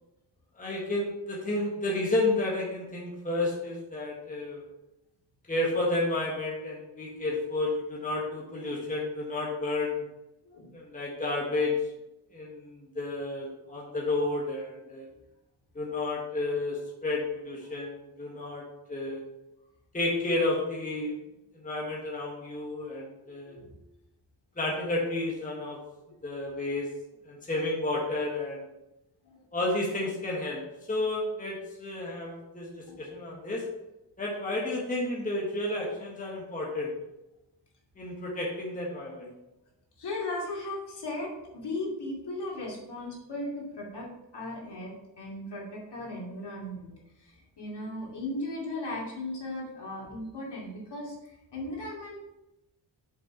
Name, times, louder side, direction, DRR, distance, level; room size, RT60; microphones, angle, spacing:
voice 1, 0.6-4.6 5.5-10.0 10.7-11.7 12.3-15.1 15.7-18.6 18.9-19.2 19.9-21.2 21.5-23.5 24.6-25.8 26.2-26.9 27.3-28.6 29.5-30.6 30.9-33.6 34.2-36.9 38.0-39.3, left 2 dB, 20° left, -4 dB, 1.4 m, -31 dB
voice 2, 23.2-23.7 29.2-29.5 32.9-33.1 40.0-52.2, left 2 dB, 65° left, -4 dB, 2.6 m, -37 dB
6.4 x 5.7 x 4.4 m, 0.94 s
wide cardioid pair, 160°, 43 cm